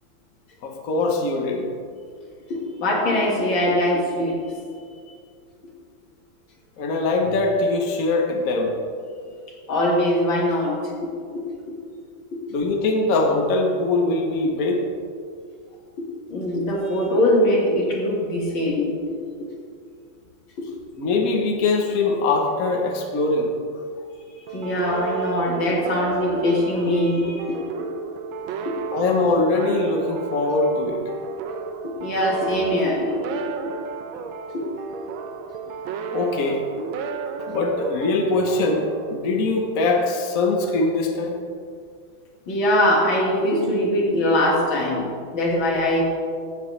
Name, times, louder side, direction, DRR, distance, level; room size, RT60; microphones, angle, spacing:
voice 1, 0.6-1.7 6.8-8.7 12.5-14.9 21.0-23.5 28.9-31.0 36.1-36.6 37.5-41.4, left 3 dB, 50° left, 1 dB, 1.3 m, -22 dB
voice 2, 2.5-4.4 9.7-11.4 12.3-12.4 16.3-19.2 24.5-27.6 28.7-28.8 32.0-33.4 34.5-34.6 42.5-46.0, left 1 dB, 85° left, -2 dB, 2.6 m, -22 dB
sound 1, 24.5-39.8, right 6 dB, 90° right, 1.5 m, -33 dB
15.0 x 7.6 x 3.2 m, 2.2 s
omnidirectional pair, 2.1 m